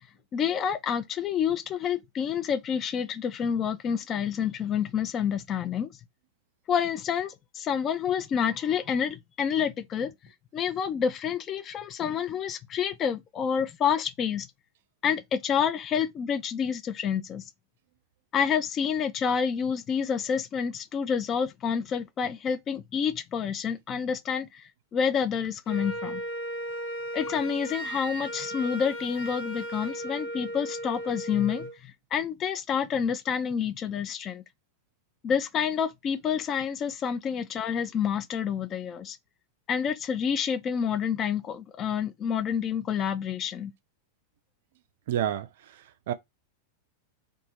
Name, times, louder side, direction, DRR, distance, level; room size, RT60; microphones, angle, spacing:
voice 1, 0.3-5.9 6.7-10.1 10.5-14.5 15.0-17.4 18.3-26.2 27.1-34.4 35.2-39.2 39.7-43.7, left 7 dB, 30° left, 0.4 m, -28 dB
Wind instrument woodwind instrument, 25.7-31.8, right 1 dB, 60° left, 0.8 m, -36 dB
voice 2, 45.1-46.1, right 11 dB, 55° right, 0.4 m, -30 dB
2.5 x 2.3 x 2.9 m
figure-of-eight pair, 90°, 0 cm